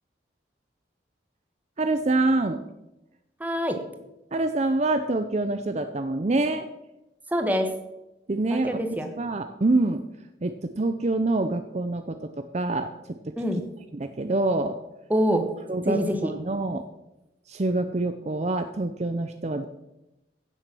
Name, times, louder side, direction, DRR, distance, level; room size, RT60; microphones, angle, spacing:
voice 1, 1.8-2.6 4.3-6.7 8.3-8.7 9.2-10.0 10.4-13.3 13.9-14.8 15.7-16.8 17.5-19.7, right 2 dB, 40° right, 8 dB, 0.6 m, -26 dB
voice 2, 3.4-3.8 7.3-7.7 8.5-9.1 13.4-13.6 15.1-15.4 15.9-16.3, equal, 10° right, 6 dB, 1.3 m, -25 dB
16.0 x 7.2 x 6.1 m, 0.95 s
head